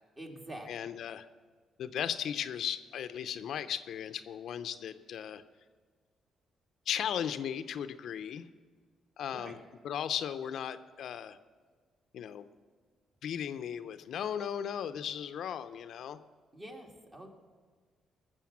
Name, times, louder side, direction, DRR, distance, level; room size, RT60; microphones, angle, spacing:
voice 1, 0.2-0.9 9.3-9.6 16.5-17.3, right 1 dB, 25° right, 2 dB, 2.4 m, -46 dB
voice 2, 0.7-1.3 1.8-5.4 6.9-8.5 9.2-9.6 9.8-11.4 12.1-12.5 13.2-16.2, left 9 dB, 70° left, 11 dB, 0.6 m, -36 dB
19.5 x 6.9 x 7.3 m, 1.5 s
cardioid pair, 90°, 0 cm